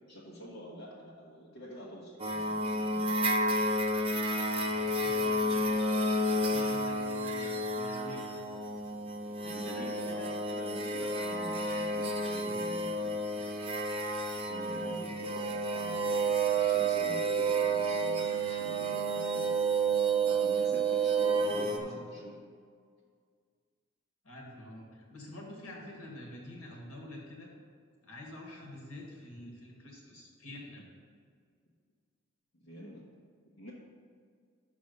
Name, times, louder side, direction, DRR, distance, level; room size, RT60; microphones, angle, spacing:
voice 1, 0.1-3.2 9.3-10.2 10.5-13.6 14.4-19.5 20.2-22.4 32.6-33.0 33.6-33.7, equal, 70° left, -6 dB, 1.2 m, -46 dB
sound 1, 2.2-21.8, right 2 dB, 25° right, 0.7 m, -30 dB
voice 2, 4.7-5.7 6.0-8.3 9.4-10.3 12.4-12.6 14.7-15.1 21.6-22.1 24.2-27.5 28.0-30.8, left 1 dB, 90° left, -1 dB, 1.8 m, -47 dB
6.2 x 5.9 x 6.6 m, 2.1 s
head